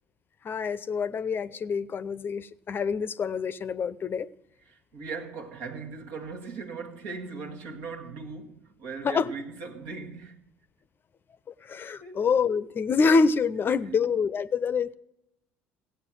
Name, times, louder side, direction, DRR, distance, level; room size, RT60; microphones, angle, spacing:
voice 1, 0.4-4.3 9.0-9.3 11.7-14.9, left 5 dB, 35° left, 0.6 m, -26 dB
voice 2, 4.6-10.4 12.0-12.3 13.8-14.1, right 4 dB, 70° right, 1.5 m, -39 dB
16.0 x 8.4 x 6.1 m
hypercardioid pair, 65°, 6 cm